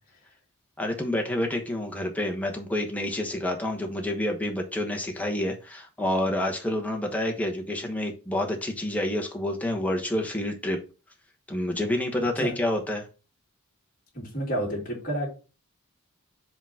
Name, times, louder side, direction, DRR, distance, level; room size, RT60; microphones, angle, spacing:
voice 1, 0.8-10.8 11.5-13.1, left 1 dB, 5° left, 1.2 m, -28 dB
voice 2, 12.2-12.6 14.1-15.3, right 1 dB, 40° left, 2.5 m, -30 dB
5.1 x 3.9 x 5.7 m
head